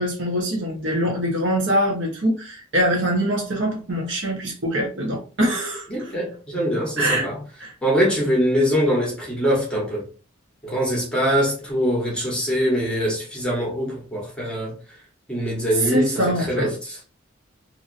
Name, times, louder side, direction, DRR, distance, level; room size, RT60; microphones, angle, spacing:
voice 1, 0.0-6.1 7.0-7.3 7.6-7.7 15.8-16.7, equal, 65° right, 1.1 m, -23 dB
voice 2, 5.9-7.4 7.8-10.0 10.6-14.7 15.3-16.1 16.4-17.0, equal, 5° left, 1.1 m, -23 dB
2.9 x 2.6 x 2.6 m
head